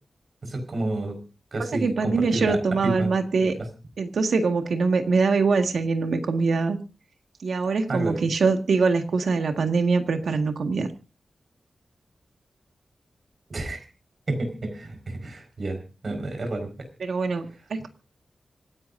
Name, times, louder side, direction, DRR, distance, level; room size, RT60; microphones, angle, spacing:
voice 1, 0.4-1.2 1.5-2.6 2.8-3.1 3.4-3.5 7.9-8.2 13.5-13.8 14.3-15.8 16.0-16.9, right 2 dB, 45° right, 7 dB, 4.8 m, -30 dB
voice 2, 1.7-3.5 4.0-6.8 7.4-10.9 17.0-17.9, right 4 dB, 80° right, 5 dB, 1.8 m, -23 dB
26.0 x 11.0 x 2.6 m, 0.33 s
wide cardioid pair, 150°, 0 cm